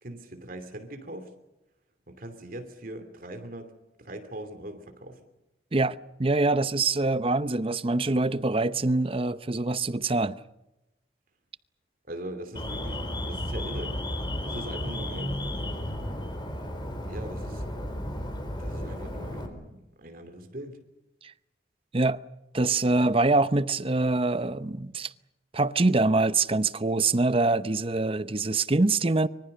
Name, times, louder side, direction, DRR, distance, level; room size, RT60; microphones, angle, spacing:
voice 1, 0.0-1.3 2.1-3.7 4.0-5.2 12.1-14.0 14.4-15.4 17.1-17.7 18.6-20.8 22.9-23.0, right 1 dB, 50° right, 2.7 m, -41 dB
voice 2, 5.7-10.3 21.9-22.2 22.5-25.1 25.5-29.3, right 3 dB, 30° right, 0.7 m, -24 dB
Alarm, 12.6-19.5, left 1 dB, 25° left, 4.1 m, -33 dB
25.0 x 24.5 x 6.7 m
head